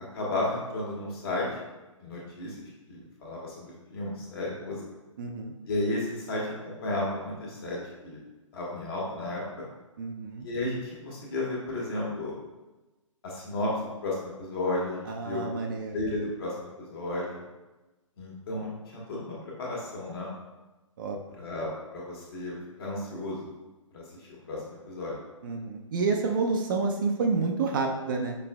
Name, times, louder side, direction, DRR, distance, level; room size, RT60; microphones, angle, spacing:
voice 1, 0.1-1.5 2.0-2.6 2.9-4.8 5.7-8.2 8.5-9.4 10.4-12.4 13.2-15.5 15.9-17.4 18.2-20.3 21.4-21.7 21.9-23.4 23.9-25.2, left 2 dB, 45° left, -4 dB, 1.4 m, -33 dB
voice 2, 5.2-5.5 10.0-10.5 15.1-16.0 21.0-21.2 25.4-28.4, right 4 dB, 40° right, 2 dB, 0.4 m, -29 dB
6.1 x 3.2 x 2.2 m, 1.1 s
figure-of-eight pair, 130°, 17 cm